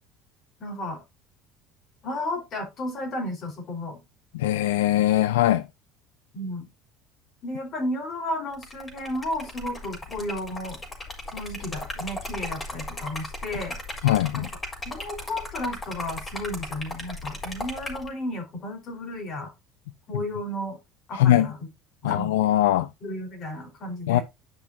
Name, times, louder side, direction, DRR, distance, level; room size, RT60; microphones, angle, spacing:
voice 1, 0.6-1.0 2.0-4.0 6.3-6.7 7.4-10.8 11.3-13.8 14.3-14.5 14.8-19.5 20.1-20.8 21.1-21.6 22.0-22.3 23.0-24.2, left 1 dB, 50° left, 4.5 m, -33 dB
voice 2, 4.3-5.6 14.0-14.5 21.1-21.5 22.0-22.9 24.1-24.2, left 13 dB, 90° left, 0.4 m, -21 dB
Liquid, 8.5-18.1, left 1 dB, 25° left, 4.2 m, -36 dB
10.5 x 6.0 x 2.8 m
supercardioid pair, 90°, 0 cm